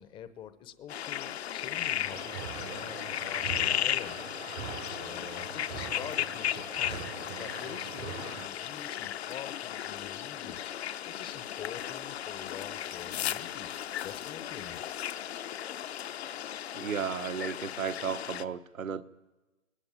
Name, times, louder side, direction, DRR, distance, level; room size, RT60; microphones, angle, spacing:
voice 1, 0.0-3.0 3.2-4.2 4.9-7.1 7.4-10.7 11.1-13.7 14.0-14.8, left 9 dB, 10° left, 13 dB, 0.8 m, -45 dB
sound 1, 0.9-18.4, left 11 dB, 50° left, 1.0 m, -35 dB
sound 2, 2.1-8.5, right 12 dB, 30° right, 0.9 m, -43 dB
voice 2, 16.7-19.0, right 7 dB, 75° right, 10 dB, 1.3 m, -34 dB
19.5 x 18.5 x 8.9 m, 1.2 s
figure-of-eight pair, 125°, 41 cm